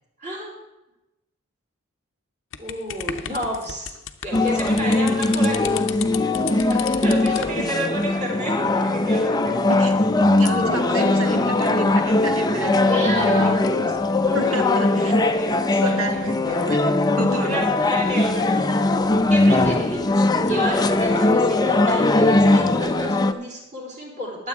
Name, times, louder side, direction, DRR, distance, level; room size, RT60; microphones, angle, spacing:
voice 1, 0.2-0.5 2.6-4.0 4.2-5.9 6.5-9.6 12.9-13.5 14.2-16.0 17.4-18.8 19.3-24.5, equal, 35° right, -2 dB, 3.7 m, -30 dB
sound 1, 2.5-7.6, left 9 dB, 65° left, 0.7 m, -34 dB
sound 2, 4.3-23.3, left 2 dB, 20° left, 0.5 m, -20 dB
voice 2, 10.3-13.9 14.3-15.2 15.8-17.7, right 2 dB, 85° right, 5 dB, 1.6 m, -31 dB
21.5 x 8.0 x 3.6 m, 0.96 s
head